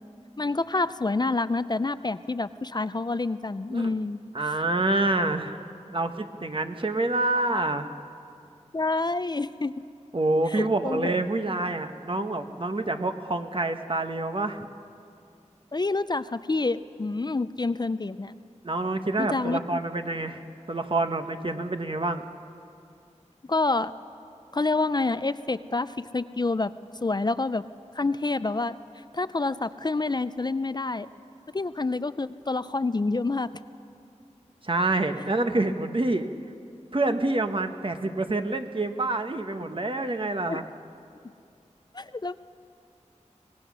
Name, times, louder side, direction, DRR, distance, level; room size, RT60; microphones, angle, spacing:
voice 1, 0.4-4.2 8.7-9.7 10.5-11.1 15.7-18.3 19.2-19.6 23.5-23.9 24.5-26.7 27.0-27.6 28.0-28.8 29.1-31.1 31.5-33.5 40.5-40.6 41.9-42.4, left 3 dB, 35° left, 14 dB, 0.4 m, -27 dB
voice 2, 4.3-5.6 5.9-7.9 10.1-14.7 18.6-20.4 20.7-22.2 34.6-36.3 36.9-40.6, right 2 dB, 45° right, 7 dB, 1.1 m, -27 dB
24.5 x 18.5 x 6.2 m, 2.5 s
wide cardioid pair, 65°, 12 cm